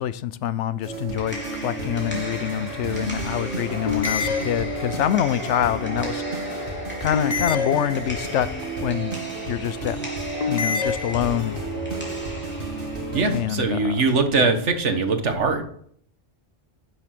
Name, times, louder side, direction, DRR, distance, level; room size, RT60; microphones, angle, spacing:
voice 1, 0.0-6.2 6.5-6.7 7.0-8.5 8.8-10.2 10.5-11.6 13.3-14.0 14.3-14.5, left 10 dB, 75° left, 0.9 m, -26 dB
sound 1, 0.8-13.4, right 2 dB, 45° right, 2.6 m, -32 dB
sound 2, 1.0-14.9, right 1 dB, 10° left, 3.6 m, -37 dB
sound 3, 1.3-1.9 3.9-5.2 7.1-8.5 10.4-11.7, left 6 dB, 40° left, 0.5 m, -28 dB
voice 2, 13.1-15.7, right 3 dB, 70° right, 1.7 m, -22 dB
11.5 x 7.0 x 6.0 m
omnidirectional pair, 1.2 m